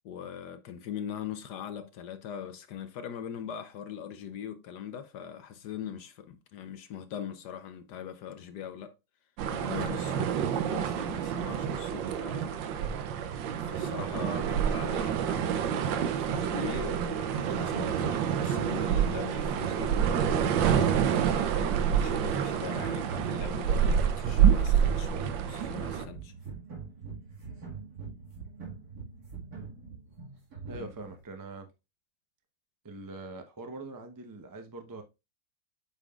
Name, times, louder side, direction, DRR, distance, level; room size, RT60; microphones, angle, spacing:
voice 1, 0.0-8.9 9.5-12.5 13.6-20.0 20.5-26.3 30.7-30.9, left 8 dB, 65° left, 1.1 m, -41 dB
sound 1, 9.4-26.0, right 8 dB, 70° right, 1.4 m, -28 dB
sound 2, 18.5-31.2, right 6 dB, 50° right, 2.4 m, -42 dB
voice 2, 30.6-31.7 32.8-35.0, right 2 dB, 30° right, 0.3 m, -43 dB
8.2 x 5.6 x 2.4 m
omnidirectional pair, 2.2 m